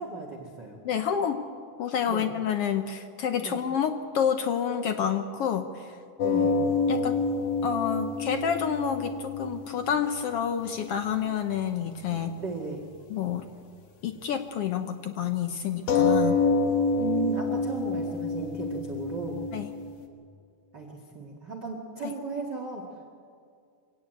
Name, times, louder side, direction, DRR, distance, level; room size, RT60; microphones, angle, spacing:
voice 1, 0.0-0.8 2.1-2.3 3.4-3.6 6.2-6.6 12.1-12.8 17.0-19.4 20.7-22.9, right 5 dB, 40° right, 1 dB, 2.3 m, -35 dB
voice 2, 0.8-1.4 1.8-6.0 6.9-7.2 7.6-12.3 13.1-13.5 14.0-16.5 19.5-19.7 22.0-22.1, left 8 dB, 70° left, 8 dB, 1.4 m, -29 dB
sound 1, 6.2-11.3 11.6-11.7 12.0-12.1 12.5-12.6 15.9-20.1, left 4 dB, 55° left, 2.3 m, -27 dB
24.5 x 17.0 x 9.2 m, 2.3 s
omnidirectional pair, 3.6 m